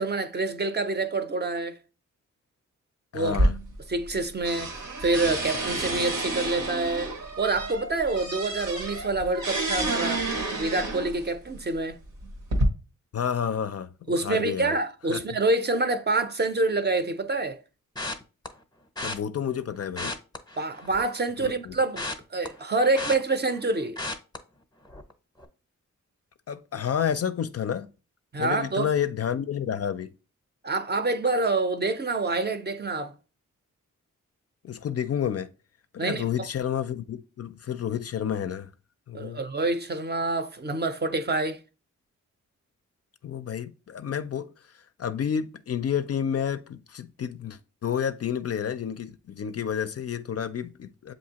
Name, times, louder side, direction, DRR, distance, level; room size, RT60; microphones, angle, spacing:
voice 1, 0.0-1.8 3.1-3.4 3.9-4.7 5.0-10.3 10.5-12.0 14.1-17.6 20.6-24.0 28.3-28.9 30.6-33.1 36.0-36.3 39.1-41.6, right 3 dB, 30° right, 0.6 m, -27 dB
voice 2, 3.1-3.5 13.1-13.9 14.2-14.8 15.1-15.2 19.0-20.2 21.4-21.7 26.5-27.9 28.4-30.1 34.6-35.5 35.9-38.7 39.1-39.4 43.2-44.5 45.0-51.1, left 8 dB, 50° left, 0.4 m, -30 dB
sound 1, 3.3-4.2 4.5-11.3 12.0-12.6, right 1 dB, 90° right, 1.2 m, -29 dB
sound 2, 18.0-18.5 19.0-19.2 19.8-21.1 21.4-23.6 24.0-24.4 24.8-25.1 25.4-25.5, left 2 dB, 15° left, 0.7 m, -34 dB
7.1 x 2.7 x 2.8 m
cardioid pair, 55°, 31 cm